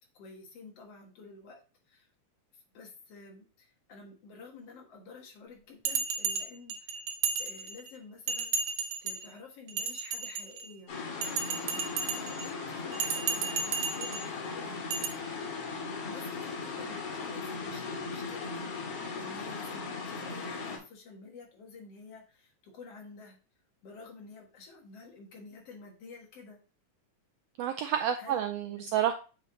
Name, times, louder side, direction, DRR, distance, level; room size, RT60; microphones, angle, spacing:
voice 1, 0.1-1.6 1.9-2.1 2.7-7.0 7.4-10.9 11.5-11.9 12.2-14.9 16.0-18.7 19.2-23.4 23.8-26.6 28.2-28.4 28.7-28.9, left 4 dB, 55° left, 1 dB, 2.5 m, -50 dB
Bell, 5.9-7.9 8.3-9.3 9.7-10.7 11.2-12.5 12.9-14.3 14.9-15.1, right 5 dB, 65° right, 1.7 m, -33 dB
sound 1, 10.9-20.8, left 4 dB, 85° left, 3.0 m, -38 dB
voice 2, 27.6-29.1, right 10 dB, 90° right, 7 dB, 1.4 m, -29 dB
8.1 x 5.2 x 2.8 m, 0.34 s
omnidirectional pair, 3.4 m